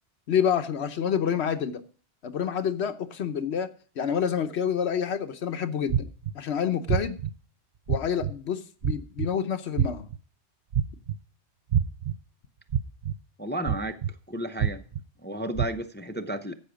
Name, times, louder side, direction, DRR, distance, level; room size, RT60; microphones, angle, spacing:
voice 1, 0.3-1.8 2.2-3.7 4.0-6.1 6.3-7.2 7.9-10.1, left 8 dB, 70° left, 9 dB, 1.1 m, -28 dB
sound 1, 5.9-6.3 6.9-7.3 7.9-8.3 8.8-9.3 9.8-10.2 10.7-11.2 11.7-12.1 12.7-13.1 13.7-14.1 14.6-15.0 15.6-15.7, right 8 dB, 55° right, 0.6 m, -25 dB
voice 2, 13.4-14.0 14.3-14.8 15.2-16.5, right 1 dB, 15° left, 8 dB, 0.4 m, -32 dB
14.5 x 5.7 x 5.0 m, 0.41 s
omnidirectional pair, 1.2 m